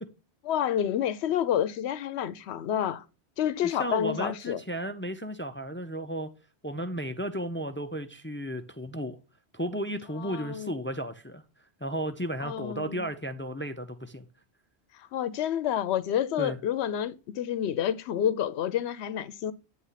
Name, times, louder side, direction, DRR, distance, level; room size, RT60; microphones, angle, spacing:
voice 1, 0.5-3.0 3.4-4.6 10.2-10.7 12.4-13.1 15.1-19.5, left 10 dB, 75° left, 0.9 m, -29 dB
voice 2, 3.6-6.3 6.6-9.2 9.5-11.4 11.8-14.3 16.4-16.6, right 1 dB, 20° left, 0.3 m, -34 dB
9.5 x 3.3 x 5.6 m
omnidirectional pair, 1.1 m